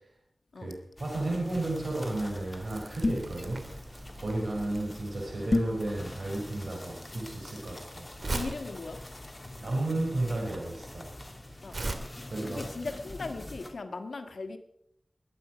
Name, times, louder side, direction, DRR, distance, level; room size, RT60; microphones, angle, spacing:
sound 1, 1.0-13.7, left 1 dB, 25° left, 2.6 m, -45 dB
voice 1, 1.0-3.6 4.2-8.1 9.6-11.1 12.3-12.7, right 2 dB, 80° right, -1 dB, 4.2 m, -33 dB
Crumpling crinkling, 2.7-12.0, right 2 dB, 60° right, 2.1 m, -40 dB
sound 2, 3.0-3.4 5.5-5.8, left 2 dB, 50° left, 1.3 m, -27 dB
voice 2, 8.3-9.0 11.6-11.8 12.4-14.6, left 3 dB, 85° left, 7 dB, 1.5 m, -38 dB
21.0 x 9.5 x 5.1 m, 0.74 s
wide cardioid pair, 60°, 0 cm